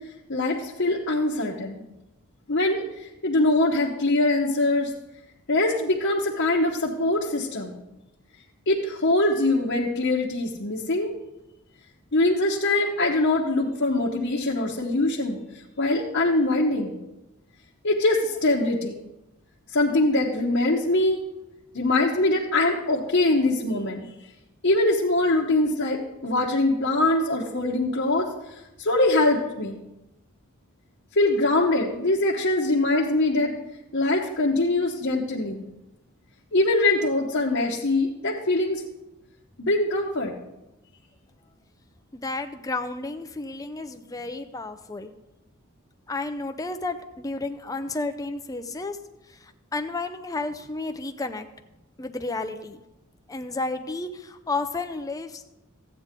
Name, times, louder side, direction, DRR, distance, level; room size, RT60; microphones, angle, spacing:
voice 1, 0.3-1.8 2.5-2.8 3.2-4.9 5.5-7.8 8.7-11.1 12.1-15.4 15.8-16.9 17.8-19.0 19.7-21.2 21.7-24.1 24.6-28.3 28.8-29.8 31.2-33.5 33.9-35.6 36.5-38.8 39.6-40.3, left 2 dB, 55° left, -4 dB, 1.0 m, -23 dB
voice 2, 42.1-45.1 46.1-49.0 49.3-51.5 52.0-52.8 53.3-55.4, left 3 dB, 15° left, 7 dB, 0.5 m, -32 dB
13.5 x 8.7 x 3.7 m, 0.97 s
head